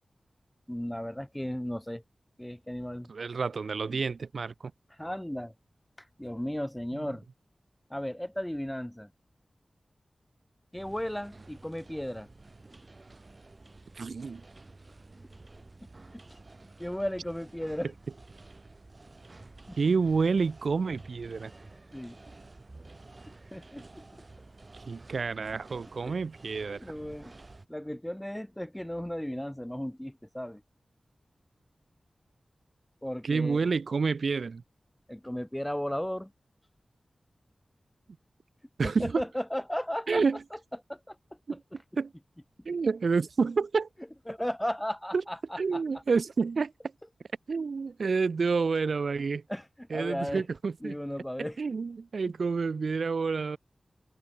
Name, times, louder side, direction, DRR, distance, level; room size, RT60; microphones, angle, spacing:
voice 1, 0.7-2.0 2.4-3.1 5.0-5.5 6.2-7.2 7.9-9.1 10.7-12.3 16.1-16.4 16.8-17.9 19.7-19.8 21.9-22.2 23.5-24.2 26.0-26.2 26.8-27.3 27.7-30.6 33.0-33.7 35.1-36.3 38.8-40.2 40.9-41.2 41.5-41.6 44.3-45.8 49.5-50.4 50.8-51.6, equal, 5° left, 3.8 m, -35 dB
voice 2, 3.1-4.5 13.9-14.4 19.8-21.5 24.9-26.8 33.2-34.6 38.8-39.2 40.1-40.4 41.5-41.6 42.0-42.1 42.6-43.9 45.1-45.2 45.6-46.7 47.5-49.4 49.9-50.9 51.4-53.6, right 4 dB, 75° right, 1.1 m, -29 dB
sound 1, 10.7-27.7, right 2 dB, 35° right, 7.0 m, -51 dB
wide cardioid pair, 100°, 0 cm